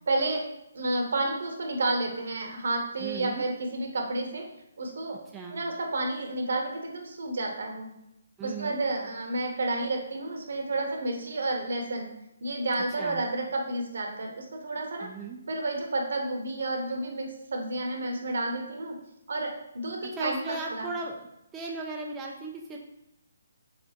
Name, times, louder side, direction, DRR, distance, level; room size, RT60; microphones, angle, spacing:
voice 1, 0.1-0.4 0.7-4.5 4.8-5.2 5.5-7.9 8.4-12.1 12.4-15.1 15.5-19.0 19.3-20.9, right 2 dB, 70° right, 2 dB, 0.9 m, -30 dB
voice 2, 3.0-3.4 5.3-5.6 8.4-8.8 12.7-13.2 15.0-15.4 20.0-21.3 21.5-22.8, right 3 dB, 15° right, -1 dB, 0.4 m, -37 dB
4.2 x 3.4 x 2.9 m, 0.85 s
hypercardioid pair, 150°, 0 cm